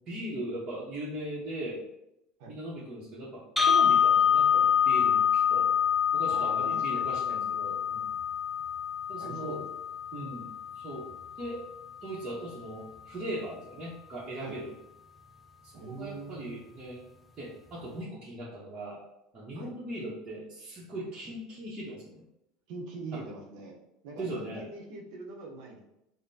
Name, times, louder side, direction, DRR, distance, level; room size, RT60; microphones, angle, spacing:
voice 1, 0.1-1.8 2.5-5.7 6.1-8.1 9.1-9.6 10.1-10.5 10.7-11.1 11.4-11.6 12.0-14.7 15.6-17.1 17.4-19.0 19.3-22.2 23.1-23.3 24.2-24.7, right 1 dB, 35° right, -7 dB, 0.9 m, -39 dB
sound 1, 3.6-11.6, left 8 dB, ahead, 0.5 m, -26 dB
voice 2, 6.2-7.5 9.2-9.6 10.2-10.3 14.4-14.6 15.7-16.6 19.5-19.7 22.7-23.7 24.0-25.8, right 3 dB, 70° right, 0 dB, 0.8 m, -43 dB
5.0 x 2.1 x 2.7 m, 0.86 s
supercardioid pair, 100°, 3 cm